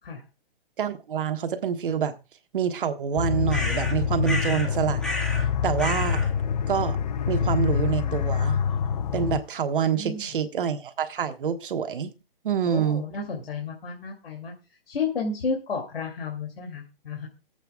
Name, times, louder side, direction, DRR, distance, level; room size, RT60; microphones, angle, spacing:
voice 1, 0.8-2.1 2.5-5.0 5.6-6.3 6.7-7.0 7.3-8.6 9.1-12.1 12.4-13.0, right 7 dB, 60° right, 1.4 m, -26 dB
sound 1, 3.2-9.4, left 7 dB, 45° left, 0.5 m, -26 dB
sound 2, 3.5-4.7 5.0-5.5 5.8-6.3, left 1 dB, ahead, 1.2 m, -31 dB
voice 2, 9.9-10.3 12.7-14.5 14.9-17.3, left 4 dB, 75° left, 2.6 m, -32 dB
24.5 x 8.2 x 2.3 m
hypercardioid pair, 160°, 29 cm